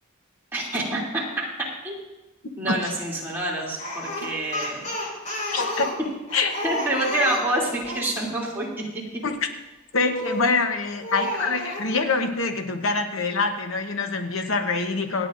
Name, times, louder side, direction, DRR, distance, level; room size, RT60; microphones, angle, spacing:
voice 1, 0.5-1.5 1.8-2.0 2.6-4.9 6.6-8.7, right 1 dB, 10° right, -6 dB, 2.9 m, -27 dB
Speech, 3.8-8.1 10.1-10.5 11.0-11.9, left 1 dB, 35° left, 4.7 m, -31 dB
voice 2, 5.5-5.9 6.3-6.6 9.2-9.5 9.9-15.3, left 4 dB, 70° left, 6 dB, 1.0 m, -25 dB
26.5 x 9.6 x 2.6 m, 1.0 s
head